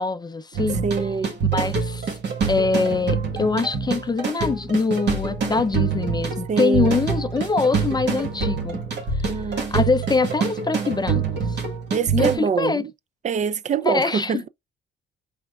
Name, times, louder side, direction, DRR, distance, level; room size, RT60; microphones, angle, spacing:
voice 1, 0.0-0.9 1.5-2.1 2.5-8.8 9.2-11.6 12.1-12.8 13.8-14.4, left 4 dB, 20° left, 0.4 m, -24 dB
sound 1, 0.5-12.4, right 5 dB, 60° right, 1.3 m, -26 dB
voice 2, 0.8-1.3 6.5-6.9 9.3-9.7 11.9-12.9 13.2-14.5, right 6 dB, 35° right, 0.4 m, -24 dB
5.0 x 3.3 x 2.3 m
cardioid pair, 90°, 20 cm